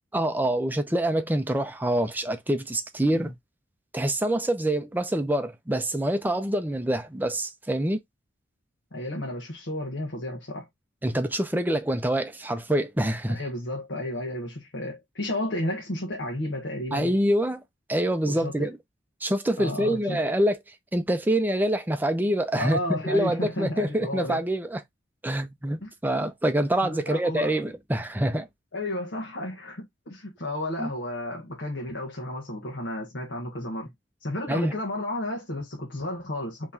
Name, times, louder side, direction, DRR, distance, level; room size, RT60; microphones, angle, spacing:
voice 1, 0.1-3.3 3.9-8.0 11.0-13.4 16.9-17.6 17.9-18.8 19.2-20.6 20.9-22.8 23.0-24.8 25.2-28.5 30.8-30.9 34.5-34.8, right 1 dB, 10° right, 0.5 m, -26 dB
voice 2, 8.9-10.7 13.3-17.1 18.3-18.7 19.6-20.2 22.5-24.4 25.8-25.9 26.8-27.6 28.7-33.9 34.2-36.7, left 1 dB, 70° left, 1.1 m, -32 dB
4.4 x 3.1 x 2.7 m
head